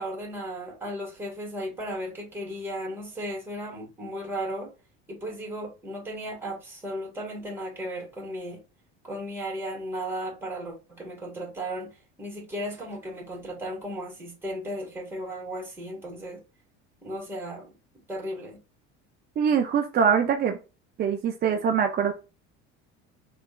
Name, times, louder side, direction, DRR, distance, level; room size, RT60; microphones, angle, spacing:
voice 1, 0.0-4.7 5.1-8.6 9.0-16.4 17.0-17.7 18.1-18.6 21.4-21.6, equal, 5° right, 1.4 m, -35 dB
voice 2, 19.4-20.6 21.0-22.1, right 7 dB, 30° right, 0.4 m, -23 dB
3.4 x 2.3 x 2.3 m
supercardioid pair, 85°, 32 cm